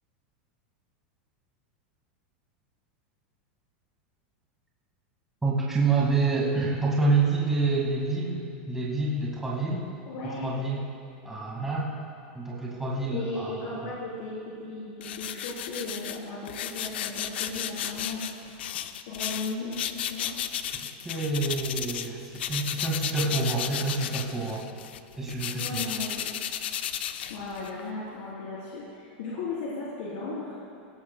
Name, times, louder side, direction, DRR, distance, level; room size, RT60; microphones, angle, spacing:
voice 1, 5.4-9.8 10.4-10.8 11.2-11.9 12.3-13.8 21.0-24.7 25.2-25.9, right 3 dB, 5° right, -5 dB, 2.0 m, -27 dB
voice 2, 10.1-10.4 13.1-18.2 19.1-20.3 25.5-26.4 27.3-30.5, left 3 dB, 60° left, -9 dB, 3.7 m, -36 dB
sound 1, 15.0-22.1 22.3-27.8, left 10 dB, 90° left, 0.6 m, -34 dB
19.0 x 17.0 x 2.3 m, 2.7 s
supercardioid pair, 175°, 6 cm